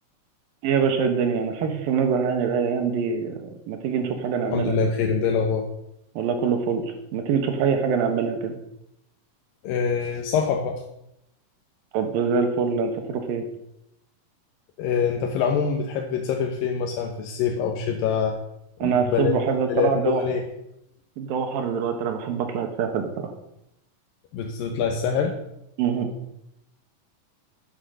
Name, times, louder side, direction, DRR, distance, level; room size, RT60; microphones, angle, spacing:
voice 1, 0.6-3.3 3.7-4.8 6.2-6.8 7.1-8.5 11.9-13.5 18.8-20.2 21.2-23.3 25.8-26.1, right 6 dB, 85° right, 5 dB, 3.1 m, -24 dB
voice 2, 4.5-5.7 9.6-10.8 14.8-18.4 18.8-19.3 19.7-20.4 24.3-25.3, left 6 dB, 85° left, 3 dB, 2.8 m, -24 dB
10.0 x 8.2 x 6.7 m, 0.82 s
omnidirectional pair, 3.9 m